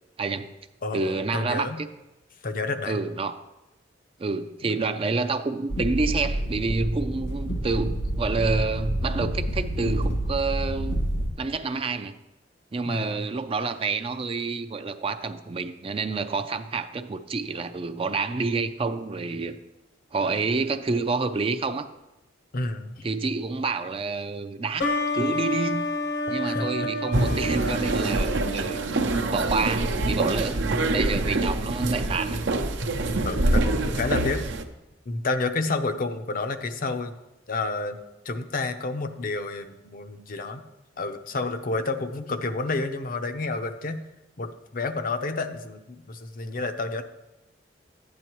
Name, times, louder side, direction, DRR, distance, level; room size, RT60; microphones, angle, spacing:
voice 1, 0.2-0.5 0.9-1.9 2.9-3.4 4.2-11.0 11.4-12.1 12.7-19.6 20.1-21.9 23.0-25.9 26.3-28.8 29.3-32.4, right 4 dB, 30° right, 9 dB, 0.4 m, -28 dB
voice 2, 0.8-1.8 2.4-3.0 4.6-4.7 12.8-13.2 22.5-23.1 26.4-26.9 33.2-34.5 35.1-37.1 37.5-38.0 38.3-40.6 41.0-44.0 44.4-47.0, left 3 dB, 50° left, 8 dB, 0.6 m, -30 dB
sound 1, 5.7-11.3, right 1 dB, 80° left, 2.2 m, -28 dB
sound 2, 24.8-30.2, left 1 dB, 65° left, 1.1 m, -30 dB
sound 3, 27.1-34.6, right 2 dB, 75° right, 0.7 m, -25 dB
11.5 x 9.4 x 3.0 m, 0.96 s
head